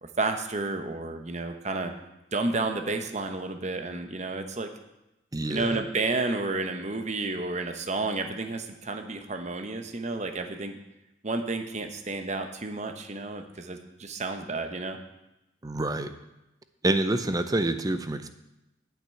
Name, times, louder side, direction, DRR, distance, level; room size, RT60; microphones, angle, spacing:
voice 1, 0.0-1.9 2.3-4.7 5.5-10.8 11.2-15.0, right 3 dB, 35° right, 6 dB, 0.9 m, -31 dB
voice 2, 5.3-5.8 15.6-16.1 16.8-18.3, right 2 dB, 20° right, 10 dB, 0.6 m, -27 dB
9.0 x 6.0 x 8.3 m, 0.93 s
head